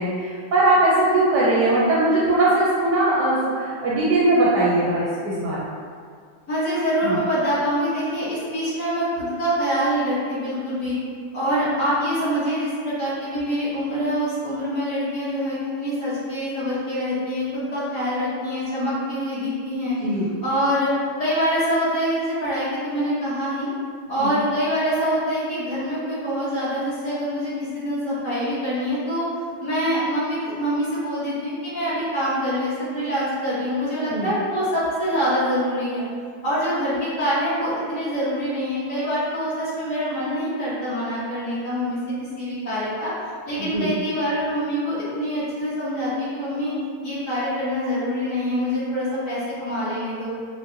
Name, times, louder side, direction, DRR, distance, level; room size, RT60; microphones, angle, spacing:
voice 1, 0.0-5.7 7.0-7.2 20.0-20.3 24.2-24.3 34.1-34.3 43.6-43.9, right 2 dB, 70° right, -7 dB, 1.0 m, -20 dB
voice 2, 6.5-11.0 11.3-19.9 20.4-20.9 21.2-23.7 24.1-29.3 29.6-36.0 36.4-42.0 42.4-43.1 43.4-46.7 47.0-50.3, equal, 50° left, -12 dB, 1.2 m, -25 dB
5.3 x 2.1 x 2.5 m, 2.1 s
omnidirectional pair, 2.2 m